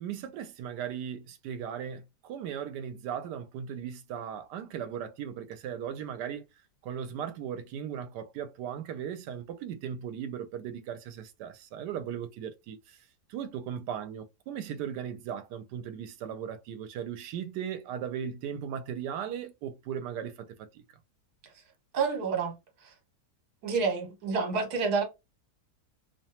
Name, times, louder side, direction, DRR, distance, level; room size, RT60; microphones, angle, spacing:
voice 1, 0.0-6.4 6.8-13.0 13.3-20.8, right 8 dB, 85° right, 1.2 m, -37 dB
voice 2, 21.9-22.6 22.8-22.9 23.6-25.0, right 5 dB, 70° right, 1.5 m, -28 dB
2.9 x 2.2 x 2.7 m
omnidirectional pair, 1.8 m